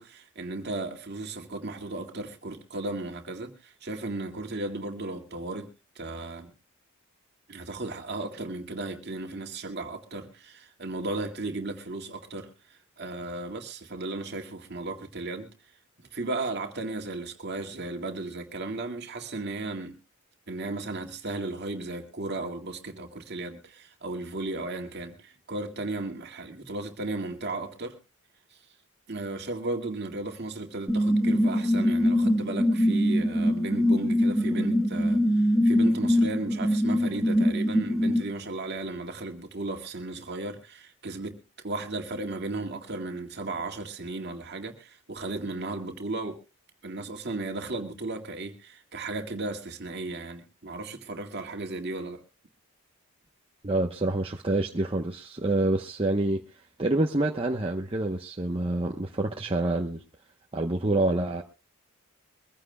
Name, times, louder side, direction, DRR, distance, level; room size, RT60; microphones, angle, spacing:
voice 1, 0.0-6.5 7.5-15.5 16.0-20.0 20.5-28.0 29.1-46.4 46.8-52.2, right 2 dB, 50° right, 2.1 m, -35 dB
sound 1, 30.9-38.2, equal, ahead, 1.4 m, -23 dB
voice 2, 53.6-56.4 56.8-60.0 60.5-61.4, right 2 dB, 25° right, 0.9 m, -27 dB
23.5 x 15.5 x 2.3 m
head